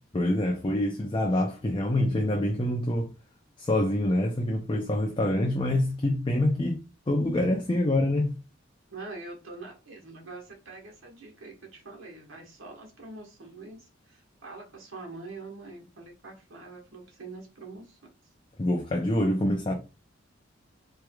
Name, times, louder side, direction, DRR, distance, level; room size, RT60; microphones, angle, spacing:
voice 1, 0.1-3.1 3.6-6.8 7.1-8.4 18.6-19.7, left 1 dB, 25° left, 0.5 m, -26 dB
voice 2, 8.9-18.0, right 3 dB, 90° right, 1.4 m, -44 dB
4.5 x 3.3 x 2.3 m
head